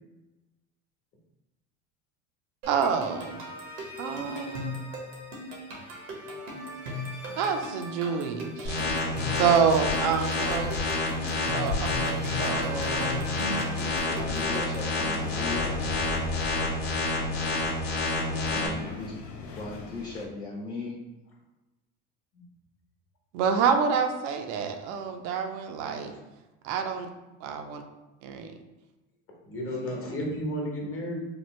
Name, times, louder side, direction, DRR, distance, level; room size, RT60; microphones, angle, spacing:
sound 1, 2.6-14.9, left 1 dB, 90° right, 0.9 m, -38 dB
voice 1, 2.7-3.4 4.0-4.8 7.4-9.1 9.3-10.7 11.5-13.3 18.1-18.8 23.3-26.1 26.6-27.1 27.4-27.8 28.2-28.6, right 6 dB, 70° right, 5 dB, 0.5 m, -28 dB
sound 2, 8.7-18.7, left 3 dB, 80° left, 0.9 m, -29 dB
sound 3, 13.6-20.3, left 2 dB, 55° left, 0.6 m, -40 dB
voice 2, 14.0-15.8 18.5-19.1 19.5-21.0, left 3 dB, 10° left, -3 dB, 0.3 m, -37 dB
voice 3, 29.4-31.2, equal, 35° left, -1 dB, 1.1 m, -33 dB
3.1 x 2.0 x 3.1 m, 1.1 s
hypercardioid pair, 85°, 37 cm